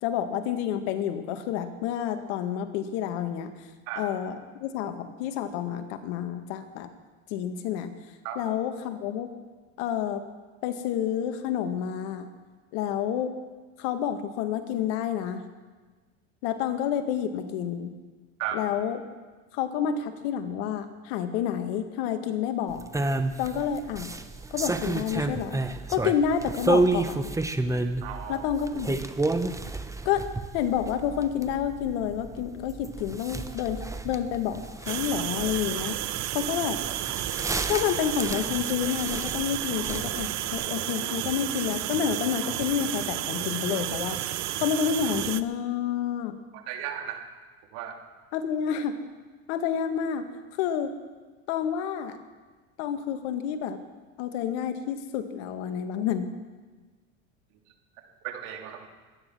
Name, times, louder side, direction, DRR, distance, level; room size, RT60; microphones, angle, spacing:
voice 1, 0.0-3.5 4.0-6.9 7.3-7.9 8.4-9.3 9.8-10.2 10.6-12.3 12.7-13.4 13.8-15.4 16.4-17.9 18.5-19.0 19.5-22.8 23.4-24.1 24.5-25.6 25.9-27.3 28.3-29.0 30.1-30.3 30.5-36.0 36.3-36.8 37.7-44.2 44.6-46.4 48.3-49.0 49.5-50.3 50.6-50.9 51.5-52.2 52.8-53.8 54.2-56.3, left 9 dB, 75° left, 8 dB, 1.8 m, -29 dB
sound 1, 22.7-40.7, right 2 dB, 10° right, 1.0 m, -31 dB
voice 2, 28.0-28.5 46.5-47.2 47.7-48.0 58.2-58.9, right 10 dB, 70° right, 3 dB, 3.2 m, -35 dB
sound 2, 34.9-45.4, right 14 dB, 50° right, 0.9 m, -32 dB
22.5 x 10.5 x 6.2 m, 1.4 s
supercardioid pair, 95°, 36 cm